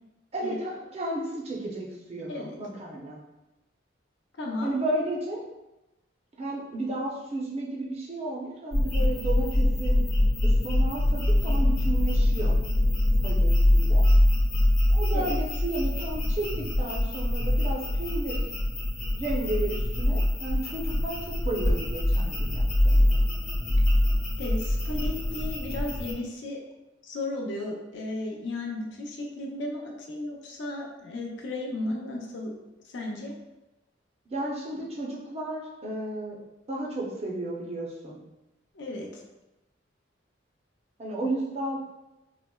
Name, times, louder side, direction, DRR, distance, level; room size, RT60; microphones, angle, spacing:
voice 1, 0.3-3.2 4.6-5.4 6.4-10.0 10.4-12.6 13.2-14.0 14.9-18.4 19.1-23.2 34.3-36.4 36.7-38.2 41.0-41.8, right 2 dB, 35° right, -2 dB, 0.5 m, -33 dB
voice 2, 4.4-4.7 15.1-15.3 24.4-26.6 27.0-32.5 32.9-33.3 38.7-39.2, left 2 dB, 70° left, 0 dB, 0.5 m, -34 dB
sound 1, 8.7-26.1, left 1 dB, 45° left, 0.8 m, -24 dB
4.0 x 2.0 x 2.2 m, 0.98 s
head